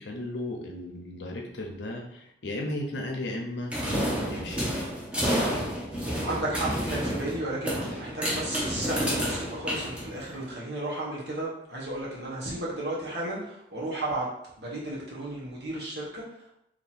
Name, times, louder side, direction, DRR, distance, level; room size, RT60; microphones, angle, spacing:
voice 1, 0.0-3.7 4.2-4.6, left 1 dB, 70° left, 1 dB, 0.8 m, -35 dB
sound 1, 3.7-10.4, equal, 5° right, 0.7 m, -30 dB
voice 2, 6.2-14.3 14.6-16.5, right 1 dB, 60° right, -5 dB, 1.3 m, -33 dB
3.0 x 2.9 x 4.2 m, 0.80 s
head